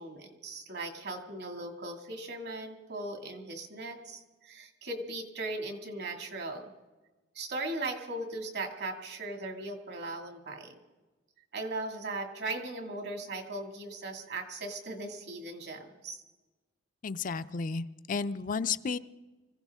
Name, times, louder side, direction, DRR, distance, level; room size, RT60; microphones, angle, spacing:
voice 1, 0.0-6.7 7.3-10.8 11.5-16.2, right 2 dB, 60° right, 4 dB, 2.2 m, -38 dB
voice 2, 17.0-19.0, left 5 dB, 45° left, 13 dB, 0.4 m, -32 dB
25.0 x 16.0 x 3.6 m, 1.2 s
head